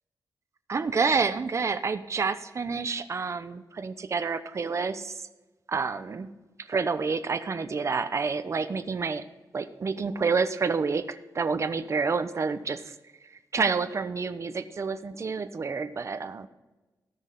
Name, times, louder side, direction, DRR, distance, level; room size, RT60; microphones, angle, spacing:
voice 1, 0.7-5.3 5.7-6.3 6.6-9.2 9.5-12.8 13.5-16.5, right 5 dB, 40° right, 10 dB, 0.8 m, -28 dB
18.0 x 6.3 x 3.8 m, 1.1 s
wide cardioid pair, 120°, 7 cm